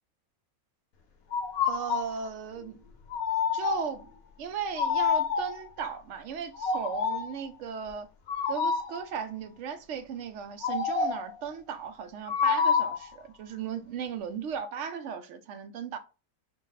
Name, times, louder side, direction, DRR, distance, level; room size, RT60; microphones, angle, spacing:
sound 1, 1.3-2.1 3.1-4.0 4.8-5.7 6.5-7.4 8.3-9.0 10.6-11.3 12.3-13.1, left 6 dB, 70° left, 1.2 m, -28 dB
voice 1, 1.6-2.8 3.5-4.1 4.4-8.1 8.5-16.0, right 7 dB, 65° right, 0.8 m, -36 dB
4.9 x 2.1 x 3.9 m
omnidirectional pair, 1.5 m